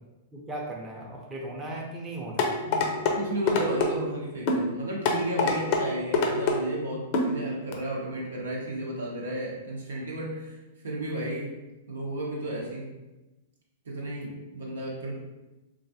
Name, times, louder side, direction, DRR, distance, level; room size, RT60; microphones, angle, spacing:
voice 1, 0.3-2.5, right 1 dB, 15° right, -3 dB, 0.6 m, -37 dB
sound 1, 2.4-3.2 3.5-3.9 4.5-4.6 5.0-5.8 6.1-6.6 7.1-7.3 7.7-7.8, left 4 dB, 45° left, 0.5 m, -23 dB
voice 2, 2.6-10.6 10.8-11.5 11.9-12.9 13.8-15.2, right 1 dB, 85° right, -3 dB, 0.9 m, -33 dB
3.1 x 2.4 x 2.6 m, 1.0 s
hypercardioid pair, 125°, 0 cm